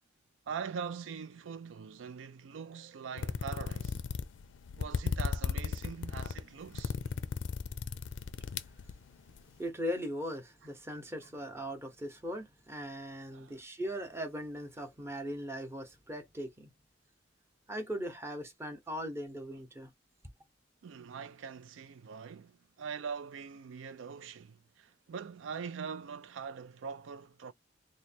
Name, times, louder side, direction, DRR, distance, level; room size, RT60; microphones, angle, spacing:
voice 1, 0.5-4.0 4.8-7.0 13.3-13.6 20.8-27.5, right 6 dB, 85° right, 0.4 m, -42 dB
sound 1, 3.2-9.4, left 5 dB, 75° left, 0.4 m, -35 dB
voice 2, 9.6-16.7 17.7-19.9, equal, 15° right, 0.7 m, -39 dB
3.1 x 2.1 x 4.2 m
head